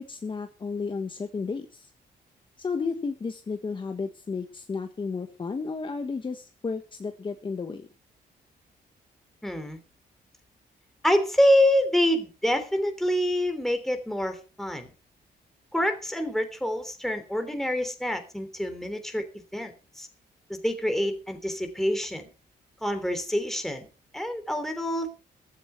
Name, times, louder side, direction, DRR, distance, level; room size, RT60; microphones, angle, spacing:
voice 1, 0.0-1.9 2.6-7.9, left 4 dB, 30° left, 6 dB, 1.5 m, -33 dB
voice 2, 9.4-9.8 11.0-14.9 15.7-19.3 19.5-20.1 20.5-22.3 22.8-23.9 24.1-25.1, equal, ahead, 7 dB, 3.3 m, -26 dB
15.0 x 13.0 x 4.6 m, 0.33 s
cardioid pair, 125°, 17 cm